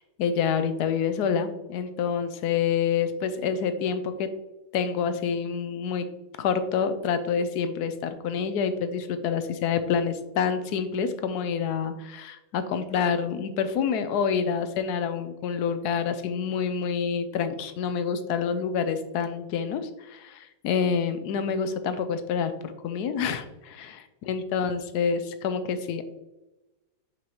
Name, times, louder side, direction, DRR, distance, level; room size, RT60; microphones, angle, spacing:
voice 1, 0.0-4.3 4.7-6.1 6.4-26.0, left 6 dB, 75° left, 10 dB, 1.1 m, -27 dB
6.0 x 5.4 x 3.0 m, 1.0 s
omnidirectional pair, 1.8 m